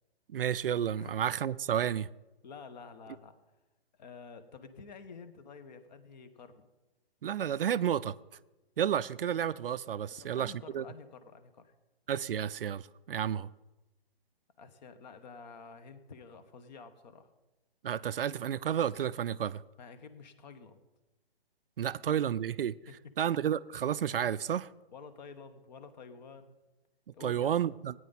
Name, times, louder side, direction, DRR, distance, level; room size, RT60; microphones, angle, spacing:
voice 1, 0.3-2.1 7.2-8.2 8.8-10.8 12.1-12.8 13.1-13.5 17.8-19.6 21.8-22.7 23.2-24.7 27.2-27.9, right 9 dB, 60° right, 0.5 m, -31 dB
voice 2, 2.4-3.3 4.0-6.6 10.2-11.7 14.6-17.3 19.8-20.8 22.0-22.1 22.9-23.0 24.9-26.6 27.1-27.5, left 5 dB, 45° left, 1.3 m, -50 dB
17.5 x 9.3 x 4.1 m
hypercardioid pair, 145°, 31 cm